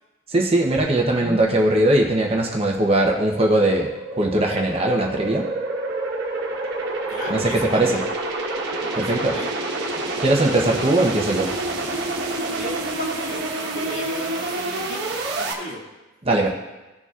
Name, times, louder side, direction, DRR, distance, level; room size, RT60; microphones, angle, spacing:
voice 1, 0.3-3.9 4.2-5.5 7.3-8.0 9.0-9.4 10.2-11.5 16.2-16.5, right 1 dB, 25° right, 0 dB, 0.9 m, -20 dB
sound 1, 0.8-15.5, right 2 dB, 50° right, 1.4 m, -28 dB
voice 2, 7.1-8.1 8.8-9.6 12.5-15.0 15.4-15.8, equal, 60° left, -5 dB, 2.3 m, -35 dB
16.0 x 6.8 x 2.5 m, 1.1 s
head